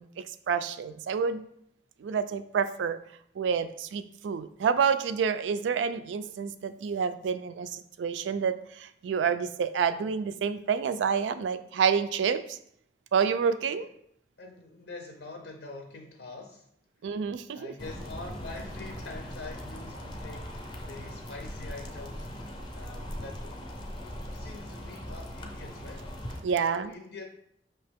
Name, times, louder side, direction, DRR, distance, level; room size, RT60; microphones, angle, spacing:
voice 1, 0.0-1.4 2.0-3.0 3.4-12.6 13.1-13.9 17.0-17.7 26.4-26.9, right 6 dB, 85° right, 11 dB, 0.3 m, -28 dB
voice 2, 14.4-16.7 17.1-17.2 17.5-22.3 22.7-23.6 24.0-26.1 26.6-27.2, left 3 dB, 75° left, 2 dB, 0.5 m, -45 dB
sound 1, 17.8-26.4, equal, 25° left, 0.5 m, -40 dB
5.5 x 2.8 x 3.4 m, 0.72 s
head